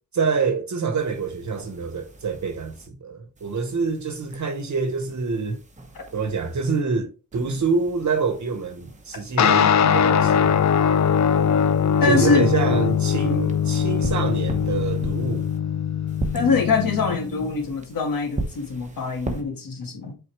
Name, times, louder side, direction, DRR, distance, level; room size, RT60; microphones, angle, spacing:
voice 1, 0.1-5.6 6.1-10.7 12.0-15.5, right 4 dB, 60° right, 1.1 m, -26 dB
sound 1, 1.0-2.9 3.4-6.8 7.3-9.4 9.9-15.6 16.1-19.4, right 2 dB, 20° right, 1.0 m, -38 dB
sound 2, 9.4-17.2, left 7 dB, 55° left, 0.4 m, -21 dB
voice 2, 12.0-12.7 16.3-20.1, left 4 dB, 80° left, 1.9 m, -24 dB
8.0 x 4.2 x 3.2 m
wide cardioid pair, 150°, 33 cm